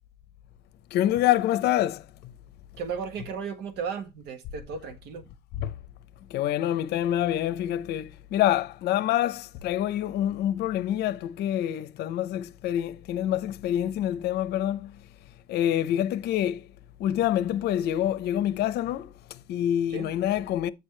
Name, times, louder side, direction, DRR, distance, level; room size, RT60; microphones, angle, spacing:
voice 1, 0.9-2.3 5.5-5.7 6.3-15.0 15.5-16.7 17.0-20.7, left 12 dB, 75° left, 0.7 m, -26 dB
voice 2, 2.8-5.3 19.9-20.1, right 6 dB, 85° right, 1.7 m, -35 dB
8.5 x 6.7 x 3.3 m
cardioid pair, 110°, 17 cm